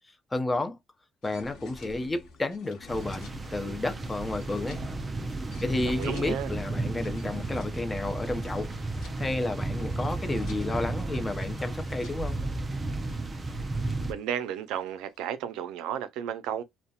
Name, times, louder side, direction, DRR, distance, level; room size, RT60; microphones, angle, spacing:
voice 1, 0.3-0.8 1.2-4.8 5.6-8.7 9.2-12.4, left 2 dB, 20° left, 0.6 m, -31 dB
sound 1, 1.2-15.2, left 3 dB, 80° left, 0.8 m, -52 dB
sound 2, 2.9-14.1, right 2 dB, 25° right, 0.5 m, -33 dB
voice 2, 5.8-6.5 14.1-16.6, right 9 dB, 85° right, 0.4 m, -33 dB
2.8 x 2.0 x 2.3 m
cardioid pair, 90°, 0 cm